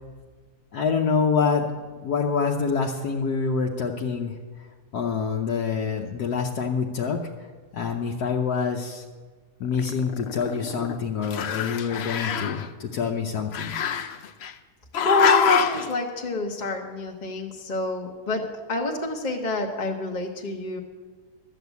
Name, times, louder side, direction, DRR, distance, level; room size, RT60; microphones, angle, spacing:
voice 1, 0.7-1.7 2.0-4.3 4.9-7.2 7.7-9.0 9.6-13.7, left 5 dB, 80° left, 0 dB, 1.4 m, -26 dB
Growling, 9.7-11.0 11.2-12.7 13.5-14.5 14.9-15.9, left 8 dB, 60° left, 0.7 m, -26 dB
voice 2, 15.0-18.4 18.7-20.8, left 2 dB, 35° left, 1 dB, 1.1 m, -27 dB
12.5 x 7.3 x 8.2 m, 1.4 s
omnidirectional pair, 1.6 m